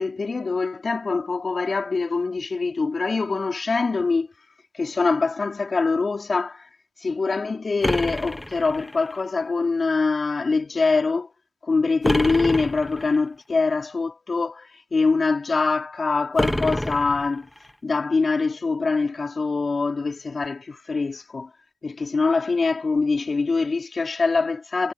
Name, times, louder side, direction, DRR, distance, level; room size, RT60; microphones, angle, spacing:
voice 1, 0.0-4.3 4.7-6.7 7.0-11.3 11.6-17.5 17.8-21.5 21.8-24.9, left 4 dB, 30° left, 4.5 m, -24 dB
sound 1, 7.8-9.2 12.0-13.2 16.4-17.7, left 1 dB, 5° left, 0.7 m, -27 dB
cardioid pair, 90°, 0 cm